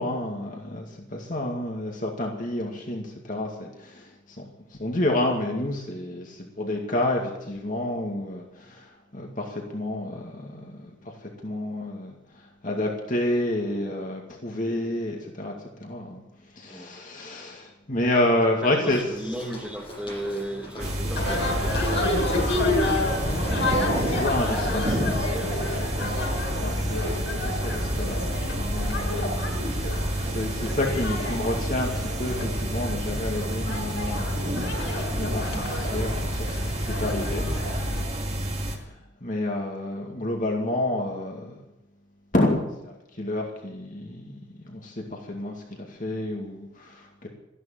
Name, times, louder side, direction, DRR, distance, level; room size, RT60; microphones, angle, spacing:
voice 1, 0.0-15.5 15.8-16.2 16.5-19.0 23.6-25.2 26.0-26.1 26.6-27.0 27.3-30.0 30.2-34.8 35.1-37.5 38.6-38.9 39.2-41.6 42.3-42.6 42.8-47.3, left 1 dB, 40° left, 0 dB, 2.3 m, -30 dB
voice 2, 18.6-23.4 24.4-26.4, right 1 dB, 5° right, 2 dB, 1.7 m, -37 dB
Walk footsteps, 18.9-25.6, equal, 25° left, 7.5 m, -42 dB
sound 1, 20.8-38.8, right 1 dB, 35° right, 2.4 m, -30 dB
sound 2, 21.1-38.0, left 1 dB, 60° left, 5.8 m, -29 dB
14.0 x 11.5 x 9.2 m, 0.90 s
head